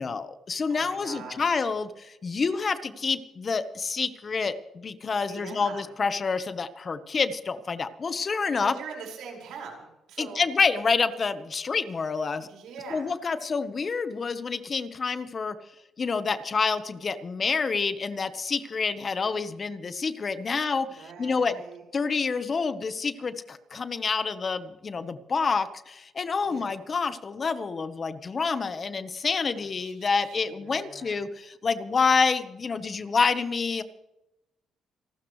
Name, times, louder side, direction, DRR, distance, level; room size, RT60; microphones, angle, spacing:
voice 1, 0.0-8.7 10.2-12.5 12.9-15.6 16.0-21.5 21.9-33.8, left 5 dB, 40° left, 12 dB, 1.2 m, -28 dB
voice 2, 0.7-1.6 5.3-5.8 8.6-10.4 12.4-13.1 20.5-21.8 26.4-26.7 29.6-31.1, right 5 dB, 85° right, 0 dB, 5.6 m, -43 dB
28.5 x 12.5 x 3.3 m, 0.93 s
cardioid pair, 90°, 0 cm